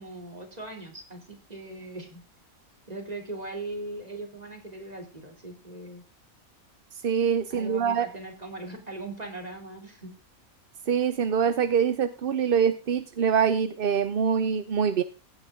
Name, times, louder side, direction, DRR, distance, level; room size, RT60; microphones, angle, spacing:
voice 1, 0.0-2.2 2.9-6.0 7.5-10.1, right 2 dB, 25° right, 3 dB, 3.2 m, -39 dB
voice 2, 7.0-8.1 10.9-15.0, right 7 dB, 50° right, 12 dB, 0.7 m, -24 dB
16.5 x 8.8 x 3.7 m, 0.34 s
omnidirectional pair, 1.5 m